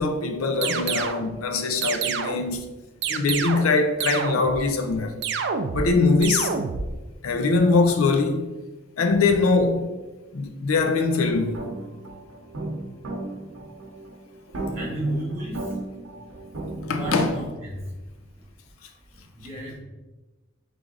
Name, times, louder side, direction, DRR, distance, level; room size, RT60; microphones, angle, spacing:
voice 1, 0.0-2.7 3.1-5.1 5.7-6.5 7.2-8.5 9.0-9.9 10.3-11.7 16.8-17.3, left 3 dB, 90° left, 0.5 m, -22 dB
sound 1, 0.6-1.3 1.8-2.5 3.0-3.8 4.0-4.6 5.2-5.9 6.2-6.9, right 6 dB, 55° right, 0.3 m, -28 dB
sound 2, 11.3-17.3, right 2 dB, 85° right, 0.8 m, -35 dB
voice 2, 14.7-15.6 16.9-17.8 19.3-19.8, right 1 dB, 10° right, 1.2 m, -32 dB
3.7 x 3.3 x 3.7 m
head